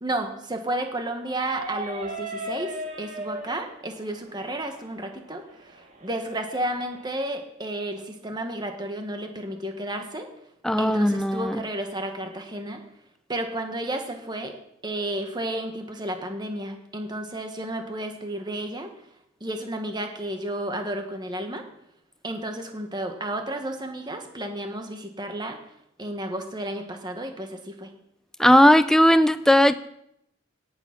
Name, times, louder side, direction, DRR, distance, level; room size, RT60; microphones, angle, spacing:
voice 1, 0.0-2.7 3.0-10.3 10.8-12.8 13.3-14.5 14.8-18.9 19.4-21.6 22.2-25.6 26.0-27.9, right 1 dB, 20° right, 5 dB, 1.4 m, -32 dB
sound 1, 1.4-7.1, right 1 dB, 35° right, 2.3 m, -38 dB
voice 2, 10.6-11.6 28.4-29.7, equal, 5° left, 12 dB, 0.4 m, -17 dB
18.0 x 7.1 x 5.9 m, 0.78 s
head